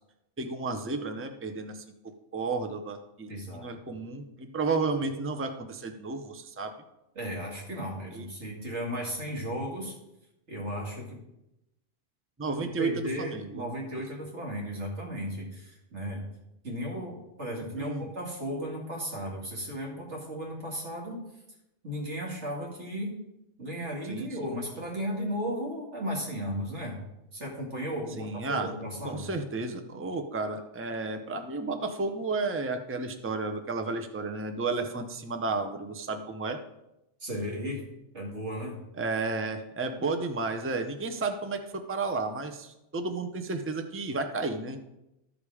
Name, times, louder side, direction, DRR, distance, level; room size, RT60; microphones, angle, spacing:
voice 1, 0.4-6.7 8.1-8.3 12.4-13.7 17.8-18.1 24.1-24.3 28.2-28.7 29.0-36.6 39.0-44.8, right 3 dB, 15° right, 7 dB, 0.5 m, -32 dB
voice 2, 3.3-3.7 7.2-10.0 10.5-11.2 12.6-16.2 16.6-21.2 21.8-23.2 23.6-27.0 27.3-29.3 37.2-37.9 38.1-38.8, equal, 60° right, -2 dB, 2.7 m, -35 dB
13.0 x 5.1 x 4.9 m, 0.90 s
omnidirectional pair, 1.3 m